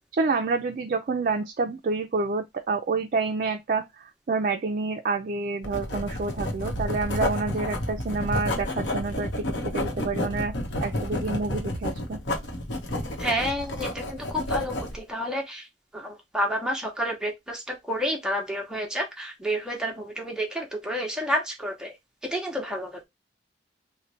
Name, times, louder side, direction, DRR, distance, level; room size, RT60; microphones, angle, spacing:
voice 1, 0.2-10.5 10.8-12.2, right 4 dB, 50° right, 0.4 m, -28 dB
Writing, 5.6-15.0, left 1 dB, 85° left, 0.9 m, -30 dB
voice 2, 13.2-15.7 15.9-21.9 22.2-23.1, equal, 5° right, 0.8 m, -30 dB
3.1 x 2.1 x 3.9 m
head